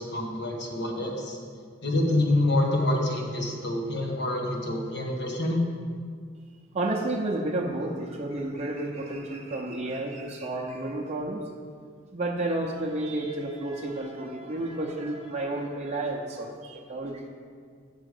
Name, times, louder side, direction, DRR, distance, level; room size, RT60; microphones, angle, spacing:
voice 1, 0.0-1.4 1.8-5.6, left 1 dB, 65° left, 0 dB, 1.4 m, -26 dB
voice 2, 6.7-11.4 12.1-17.3, right 2 dB, 35° right, -2 dB, 0.6 m, -31 dB
9.0 x 4.8 x 6.5 m, 2.1 s
head